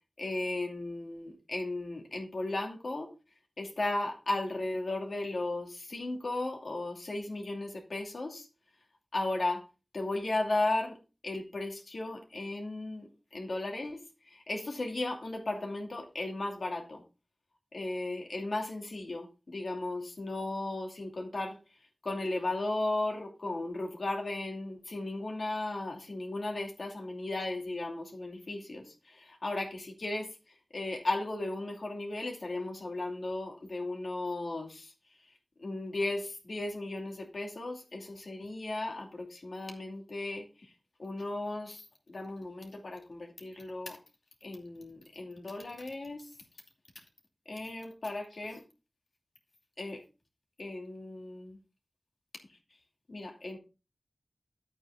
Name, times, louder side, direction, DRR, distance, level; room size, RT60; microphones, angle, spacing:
voice 1, 0.2-3.1 3.6-8.5 9.1-9.6 9.9-11.0 11.2-17.0 17.7-21.6 22.0-34.9 35.6-40.7 41.0-44.0 44.4-46.3 47.5-48.6 49.8-50.0 50.6-51.6 53.1-53.6, left 2 dB, 75° left, 2 dB, 2.6 m, -35 dB
10.5 x 8.6 x 3.6 m, 0.30 s
wide cardioid pair, 45°, 0 cm